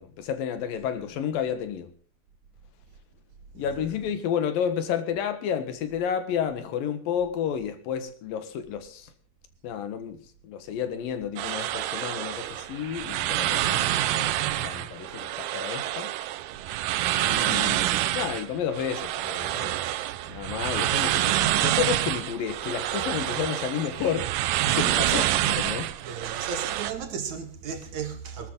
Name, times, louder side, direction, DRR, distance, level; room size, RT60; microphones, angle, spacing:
voice 1, 0.0-1.9 3.6-9.1 9.6-16.1 17.2-19.8 20.3-24.3 24.7-25.9, left 8 dB, 65° left, 3.1 m, -31 dB
sound 1, 11.4-26.9, right 14 dB, 75° right, 2.0 m, -27 dB
voice 2, 26.0-28.5, right 6 dB, 55° right, 2.8 m, -35 dB
22.0 x 12.5 x 3.9 m
omnidirectional pair, 4.5 m